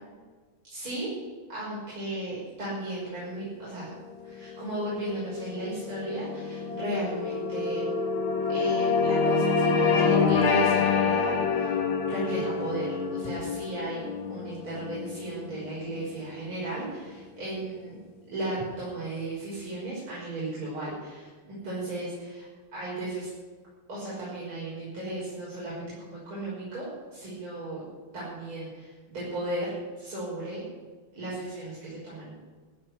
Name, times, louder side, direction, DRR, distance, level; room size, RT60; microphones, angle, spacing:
voice 1, 0.7-1.1 1.5-3.9 4.2-7.8 8.5-18.0 18.3-21.3 21.6-22.5 22.7-23.3 23.9-27.8 28.1-30.6 31.1-32.3, right 1 dB, 85° right, -9 dB, 6.7 m, -35 dB
sound 1, 4.3-16.9, left 5 dB, 70° left, 2.2 m, -27 dB
15.0 x 7.5 x 9.9 m, 1.4 s
omnidirectional pair, 2.3 m